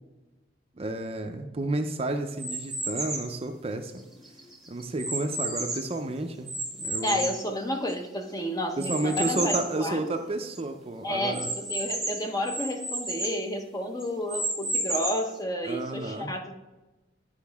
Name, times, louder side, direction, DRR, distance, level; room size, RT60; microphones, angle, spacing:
voice 1, 0.8-4.1 4.7-6.5 6.8-7.3 8.8-11.5 15.6-16.3, right 2 dB, 35° right, 6 dB, 0.5 m, -31 dB
sound 1, 2.4-3.3 4.0-6.0 6.5-8.1 8.8-9.8 10.2-10.3 10.5-10.6 11.3-13.4 14.0-15.3, right 2 dB, ahead, 1.2 m, -32 dB
voice 2, 7.0-10.0 11.0-16.5, left 1 dB, 20° left, 4 dB, 0.8 m, -31 dB
10.0 x 5.1 x 3.5 m, 1.1 s
head